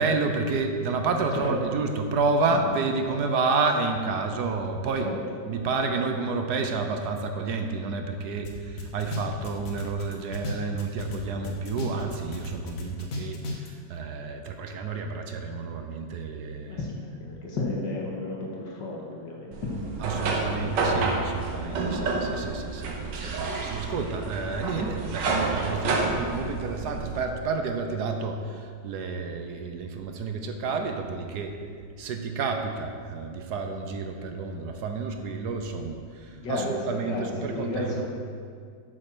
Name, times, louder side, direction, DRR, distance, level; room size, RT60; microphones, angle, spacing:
voice 1, 0.0-5.1 5.5-16.8 20.0-38.0, right 4 dB, 70° right, 5 dB, 1.3 m, -30 dB
sound 1, 8.4-8.5 8.8-11.2 11.4-13.7, left 3 dB, 55° left, 1.4 m, -34 dB
voice 2, 16.7-19.7 20.6-21.1 24.7-24.9 36.3-38.0, left 2 dB, 85° left, -2 dB, 2.2 m, -33 dB
sound 2, 19.5-27.3, right 3 dB, 85° right, 1.8 m, -29 dB
8.8 x 6.5 x 6.1 m, 2.1 s
omnidirectional pair, 1.9 m